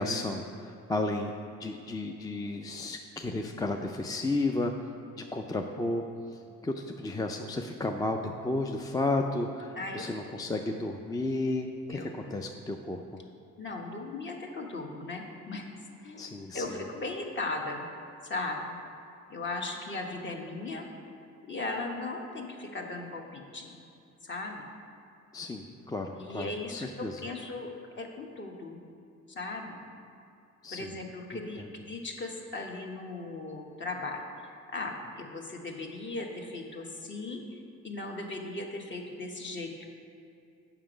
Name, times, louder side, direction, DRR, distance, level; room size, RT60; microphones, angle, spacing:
voice 1, 0.0-1.3 1.6-4.7 5.2-6.0 6.3-13.2 16.2-16.8 25.3-27.2 30.6-30.9 31.6-31.7, left 2 dB, 15° left, 3 dB, 0.4 m, -33 dB
voice 2, 9.7-10.1 11.9-12.1 13.6-15.7 16.0-17.9 18.2-18.8 19.3-20.9 21.5-23.8 24.2-24.7 26.2-27.7 27.9-28.8 29.3-29.8 30.7-39.9, left 2 dB, 40° left, 2 dB, 1.1 m, -37 dB
7.3 x 6.0 x 5.0 m, 2.5 s
cardioid pair, 90°, 30 cm